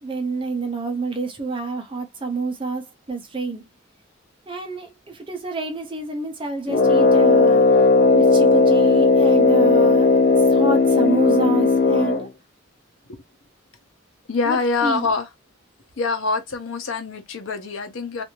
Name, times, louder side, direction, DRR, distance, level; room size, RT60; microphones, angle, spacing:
voice 1, 0.0-3.7 4.5-7.8 8.1-10.1 10.5-12.3 14.4-15.1, right 3 dB, 25° right, 0.7 m, -28 dB
Brass instrument, 6.7-12.3, left 3 dB, 50° left, 0.4 m, -16 dB
voice 2, 14.3-15.3 16.0-18.2, left 4 dB, 85° left, 0.8 m, -25 dB
2.6 x 2.5 x 2.8 m
head